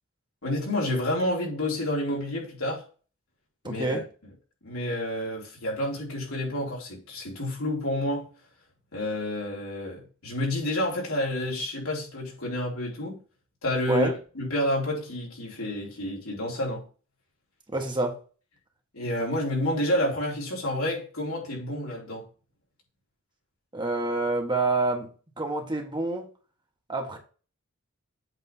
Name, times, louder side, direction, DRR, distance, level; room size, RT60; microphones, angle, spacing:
voice 1, 0.4-2.8 3.6-4.0 4.6-8.3 8.9-13.2 13.6-14.1 14.3-16.8 18.9-22.3, left 1 dB, 80° left, 3.9 m, -29 dB
voice 2, 3.6-4.0 13.9-14.1 17.7-18.2 23.7-25.1 25.4-26.3 26.9-27.2, right 2 dB, 20° right, 1.5 m, -27 dB
8.1 x 3.7 x 5.5 m
head